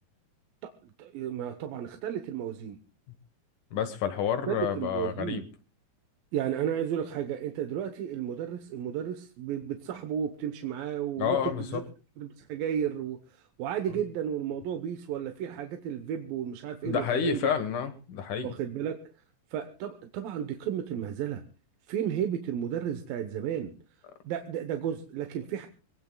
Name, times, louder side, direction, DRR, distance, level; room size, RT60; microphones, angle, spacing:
voice 1, 0.6-2.8 4.5-5.4 6.3-11.8 12.2-17.4 18.4-19.0 19.5-21.4 21.9-23.7 24.2-25.7, right 9 dB, 85° right, 6 dB, 2.8 m, -33 dB
voice 2, 3.7-5.4 11.2-11.8 16.8-18.5, left 7 dB, 70° left, 9 dB, 2.8 m, -29 dB
25.0 x 18.5 x 2.3 m, 0.34 s
omnidirectional pair, 4.0 m